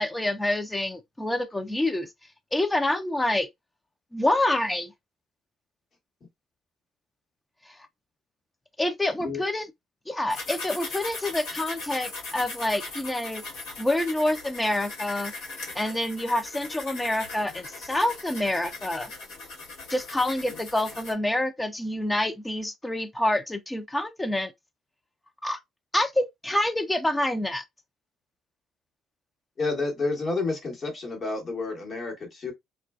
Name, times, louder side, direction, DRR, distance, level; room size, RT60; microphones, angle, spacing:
voice 1, 0.0-2.1 2.5-3.5 4.1-4.9 8.8-9.7 10.1-13.4 13.8-15.3 15.7-19.1 19.9-24.5 25.4-25.6 25.9-27.6, left 1 dB, 10° left, 0.5 m, -27 dB
sound 1, 10.3-21.1, left 3 dB, 75° left, 1.1 m, -39 dB
voice 2, 29.6-32.5, left 3 dB, 45° left, 1.1 m, -30 dB
2.4 x 2.2 x 2.3 m
hypercardioid pair, 55°, 0 cm